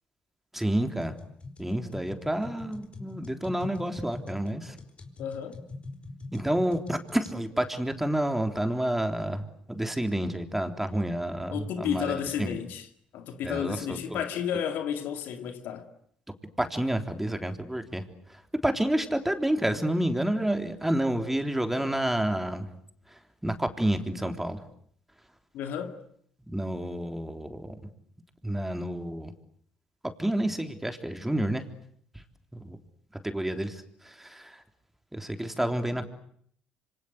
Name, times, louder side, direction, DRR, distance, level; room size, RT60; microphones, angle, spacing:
voice 1, 0.5-1.1 1.6-4.8 6.3-12.5 13.4-14.2 16.6-22.7 23.1-24.6 26.5-27.8 28.4-29.3 30.2-31.7 32.5-32.8 33.2-34.6 35.1-36.1, right 1 dB, 5° right, 3.6 m, -29 dB
sound 1, 1.0-7.4, left 3 dB, 35° left, 4.5 m, -43 dB
voice 2, 5.2-5.6 11.5-12.9 13.1-15.9 25.5-26.0, left 8 dB, 65° left, 2.3 m, -32 dB
26.5 x 25.5 x 8.1 m
hypercardioid pair, 55°, 3 cm